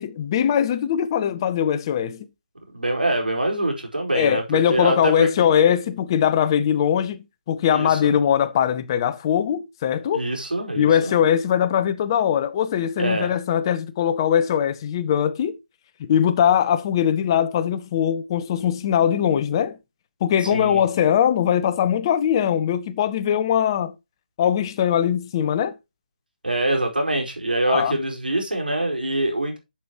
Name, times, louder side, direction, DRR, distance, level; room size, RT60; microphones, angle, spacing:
voice 1, 0.0-2.3 4.1-10.2 10.8-15.6 16.0-19.8 20.2-23.9 24.4-25.7 27.7-28.0, left 9 dB, 30° left, 0.9 m, -21 dB
voice 2, 2.7-4.4 4.7-5.3 7.7-8.1 10.1-11.1 13.0-13.3 20.4-20.8 26.4-29.6, right 1 dB, 90° right, 4.8 m, -24 dB
11.5 x 7.1 x 3.0 m
figure-of-eight pair, 150°, 5 cm